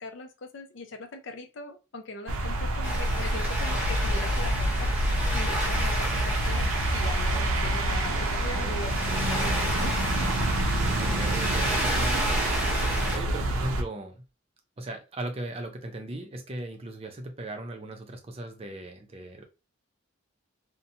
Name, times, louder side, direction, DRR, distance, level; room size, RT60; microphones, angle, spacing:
voice 1, 0.0-10.3, left 2 dB, 60° left, 7 dB, 0.5 m, -40 dB
sound 1, 2.3-13.8, right 1 dB, 85° right, 0.5 m, -27 dB
sound 2, 2.8-13.2, right 1 dB, 5° right, 1.1 m, -32 dB
sound 3, 4.3-13.0, equal, 30° left, 0.9 m, -42 dB
voice 2, 8.5-8.9 11.0-12.7 13.1-14.2 14.8-19.4, right 1 dB, 30° right, 4 dB, 0.5 m, -37 dB
2.7 x 2.1 x 2.7 m, 0.28 s
head